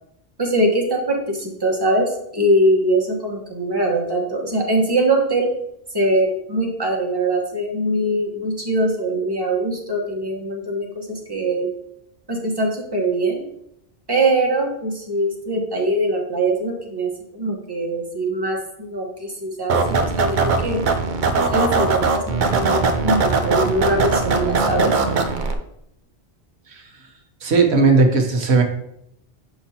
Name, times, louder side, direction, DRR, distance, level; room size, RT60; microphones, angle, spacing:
voice 1, 0.4-5.5 5.9-11.7 12.3-13.4 14.1-20.8 21.5-24.9, right 1 dB, 20° right, -1 dB, 1.2 m, -22 dB
sound 1, 19.7-25.5, right 4 dB, 50° right, 0.7 m, -20 dB
voice 2, 27.4-28.6, right 4 dB, 75° right, 3 dB, 1.2 m, -16 dB
7.0 x 5.5 x 2.8 m, 0.77 s
omnidirectional pair, 1.1 m